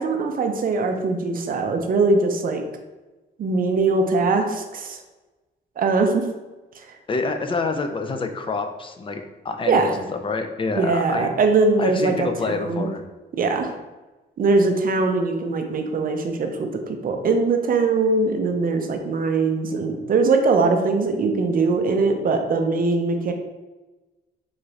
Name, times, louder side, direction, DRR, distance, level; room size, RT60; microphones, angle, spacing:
voice 1, 0.0-2.6 3.4-5.0 5.8-6.3 9.7-9.9 10.8-12.9 13.3-13.7 14.4-23.3, right 3 dB, 45° right, 5 dB, 0.5 m, -21 dB
voice 2, 7.1-11.3 11.8-13.0, left 3 dB, 25° left, 6 dB, 0.4 m, -27 dB
3.8 x 2.4 x 3.1 m, 1.1 s
cardioid pair, 90°, 20 cm